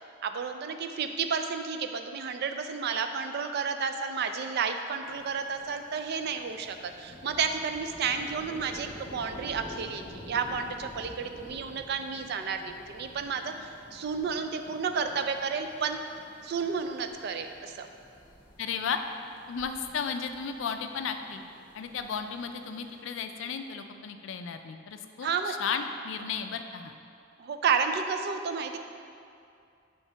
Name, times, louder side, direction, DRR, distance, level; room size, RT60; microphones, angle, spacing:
voice 1, 0.2-16.0 16.4-17.9 25.2-25.5 27.4-28.8, right 5 dB, 55° right, 7 dB, 0.4 m, -31 dB
sound 1, 5.0-23.0, equal, 40° left, 1.1 m, -50 dB
voice 2, 18.6-19.0 19.5-21.4 21.7-26.9, left 6 dB, 70° left, 7 dB, 0.4 m, -34 dB
7.4 x 4.6 x 3.3 m, 2.4 s
head